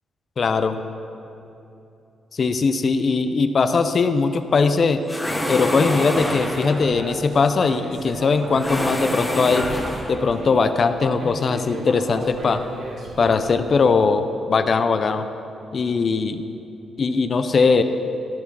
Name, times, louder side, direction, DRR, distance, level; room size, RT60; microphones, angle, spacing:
voice 1, 0.4-0.8 2.3-5.0 5.5-9.7 10.1-12.6 13.2-15.3 15.7-16.4 17.0-17.8, left 4 dB, 45° left, 10 dB, 0.4 m, -20 dB
sound 1, 5.1-6.9 8.5-10.3, equal, 5° left, 0.9 m, -26 dB
Human voice, 6.6-10.5 10.9-13.7, right 1 dB, 70° right, 1.6 m, -35 dB
12.5 x 4.8 x 5.4 m, 2.8 s
cardioid pair, 115°, 0 cm